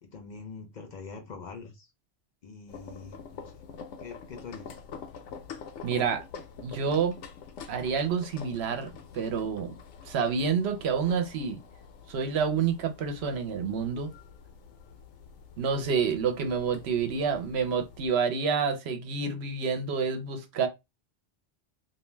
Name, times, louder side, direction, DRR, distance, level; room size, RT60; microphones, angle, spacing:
voice 1, 0.0-1.9 2.4-3.6 4.0-4.8, left 4 dB, 50° left, 0.6 m, -44 dB
sound 1, 2.7-18.1, left 6 dB, 85° left, 0.9 m, -46 dB
voice 2, 5.8-6.2 6.6-7.2 7.7-8.9 9.1-9.7 10.1-11.6 12.1-14.1 15.6-20.7, right 6 dB, 70° right, 0.9 m, -28 dB
2.4 x 2.2 x 3.1 m
omnidirectional pair, 1.2 m